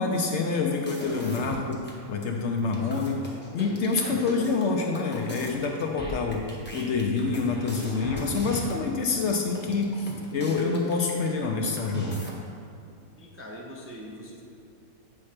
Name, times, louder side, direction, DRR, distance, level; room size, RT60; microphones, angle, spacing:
voice 1, 0.0-1.8 2.1-3.2 3.5-6.5 6.7-12.2, left 4 dB, 65° left, 2 dB, 0.8 m, -27 dB
sound 1, 0.7-1.9 2.2-2.3 2.6-11.5 11.8-12.3, equal, 10° left, 0.9 m, -38 dB
voice 2, 2.6-3.1 13.2-14.4, equal, 20° right, -3 dB, 0.4 m, -43 dB
8.6 x 3.2 x 5.7 m, 2.5 s
omnidirectional pair, 1.5 m